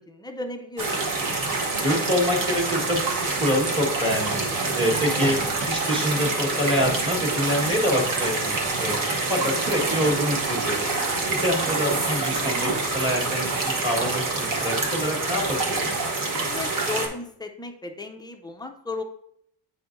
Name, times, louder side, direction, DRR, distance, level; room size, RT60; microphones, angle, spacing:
voice 1, 0.1-1.1 16.5-19.0, left 3 dB, 10° left, 4 dB, 0.4 m, -35 dB
sound 1, 0.8-17.1, right 3 dB, 45° right, 1.2 m, -26 dB
voice 2, 1.8-3.0 3.4-4.4 4.7-5.4 5.6-9.0 9.3-10.9 11.4-15.9, equal, 10° right, -1 dB, 1.5 m, -26 dB
9.2 x 4.4 x 2.5 m, 0.70 s
cardioid pair, 140°, 43 cm